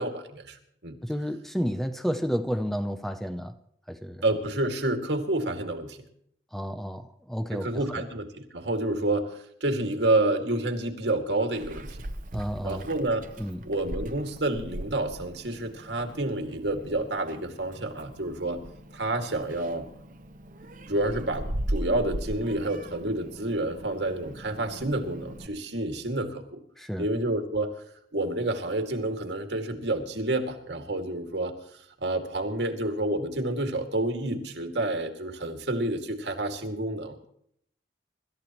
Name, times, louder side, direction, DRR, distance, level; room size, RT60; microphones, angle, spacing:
voice 1, 0.0-1.0 4.2-6.0 7.5-12.0 12.6-13.3 13.6-18.6 18.9-19.9 20.9-26.6 27.0-27.7 28.1-31.5 32.0-37.2, right 2 dB, 80° right, 2.3 m, -29 dB
voice 2, 1.0-3.5 3.9-4.2 6.5-8.0 12.3-12.9 13.4-13.6 26.8-27.1, equal, ahead, 0.6 m, -31 dB
Meow, 11.5-25.5, right 1 dB, 45° right, 0.9 m, -39 dB
25.5 x 13.5 x 3.1 m
head